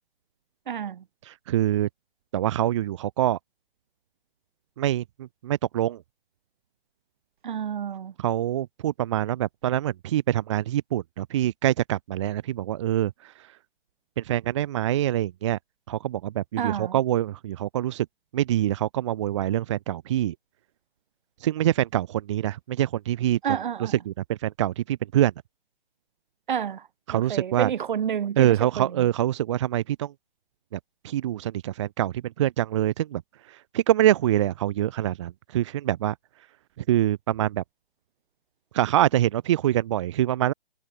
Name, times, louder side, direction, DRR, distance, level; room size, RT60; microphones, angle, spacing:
voice 1, 0.7-1.0 7.4-8.1 16.6-17.0 23.4-24.0 26.5-29.1, right 8 dB, 50° right, 1.6 m, -30 dB
voice 2, 1.2-1.9 2.3-3.4 4.8-6.0 8.2-13.5 14.2-15.6 15.9-18.1 18.3-20.3 21.4-23.4 23.8-25.3 27.1-27.7 28.4-30.1 30.7-33.2 33.5-36.1 36.9-37.6 38.7-40.5, right 12 dB, 30° right, 0.8 m, -25 dB
figure-of-eight pair, 145°, 31 cm